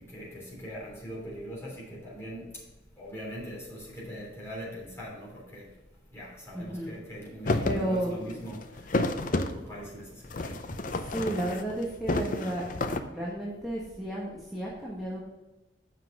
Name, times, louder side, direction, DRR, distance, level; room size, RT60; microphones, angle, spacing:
voice 1, 0.1-2.4 3.0-5.7 6.1-8.6 9.3-10.1 10.4-10.8, equal, 15° left, -6 dB, 3.3 m, -41 dB
voice 2, 6.5-6.9 7.6-8.4 10.8-15.2, right 1 dB, ahead, -6 dB, 1.3 m, -33 dB
sound 1, 7.5-7.8 8.2-9.6 10.2-11.8 12.0-13.0, left 2 dB, 45° left, 0.6 m, -30 dB
7.5 x 5.8 x 5.9 m, 1.1 s
head